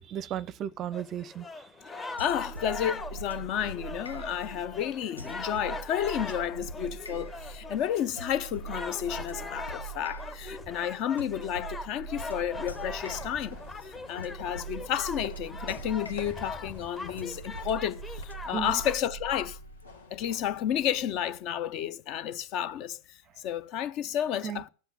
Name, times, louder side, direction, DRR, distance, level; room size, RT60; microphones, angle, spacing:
voice 1, 0.0-1.7 18.5-18.8 24.4-24.7, right 9 dB, 30° right, 0.6 m, -35 dB
sound 1, 0.9-18.9, left 3 dB, 15° left, 1.1 m, -41 dB
sound 2, 2.2-19.9, right 5 dB, 85° left, 1.0 m, -43 dB
voice 2, 2.2-13.6 14.1-19.6 20.1-23.0 23.4-24.7, left 10 dB, 40° left, 0.7 m, -31 dB
sound 3, 12.0-21.7, left 4 dB, 70° left, 2.2 m, -49 dB
14.0 x 7.9 x 7.8 m
figure-of-eight pair, 90°, 0 cm